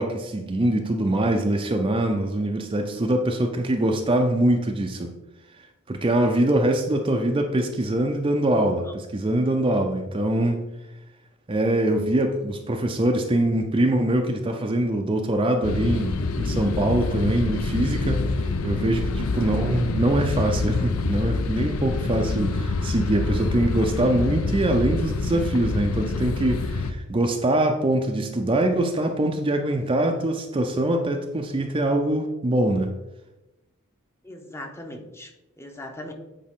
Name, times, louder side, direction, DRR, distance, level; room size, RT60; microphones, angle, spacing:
voice 1, 0.0-5.1 5.9-10.6 11.5-32.9, right 1 dB, 25° right, 3 dB, 0.5 m, -23 dB
sound 1, 15.6-26.9, left 3 dB, 70° left, 0.6 m, -26 dB
voice 2, 34.2-35.3 35.6-36.1, left 1 dB, 10° left, 4 dB, 0.7 m, -39 dB
8.6 x 4.9 x 3.6 m, 0.99 s
head